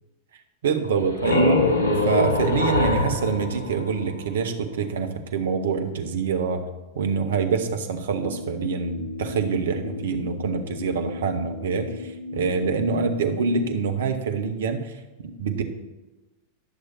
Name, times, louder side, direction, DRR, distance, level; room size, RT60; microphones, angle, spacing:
voice 1, 0.6-1.7 2.0-6.6 7.0-14.9 15.2-15.6, right 5 dB, 60° right, 6 dB, 1.0 m, -25 dB
sound 1, 0.8-4.5, left 2 dB, 70° left, 1.2 m, -23 dB
sound 2, 8.2-13.7, left 5 dB, 45° left, 1.5 m, -36 dB
11.0 x 6.7 x 4.3 m, 1.1 s
figure-of-eight pair, 90°, 0 cm